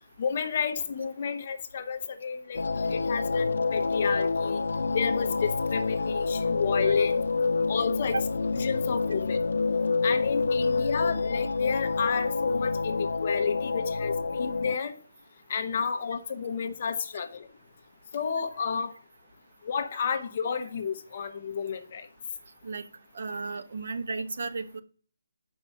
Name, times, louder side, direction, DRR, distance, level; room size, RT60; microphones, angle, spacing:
voice 1, 0.2-4.6 4.9-7.2 7.7-8.1 8.6-9.4 10.0-14.9 15.5-17.5 18.1-18.9 19.7-22.1, left 6 dB, 30° left, 0.8 m, -31 dB
sound 1, 2.5-14.8, left 4 dB, 60° left, 0.4 m, -27 dB
voice 2, 23.1-24.8, right 3 dB, 45° right, 0.9 m, -33 dB
6.8 x 5.4 x 6.9 m
hypercardioid pair, 180°, 0 cm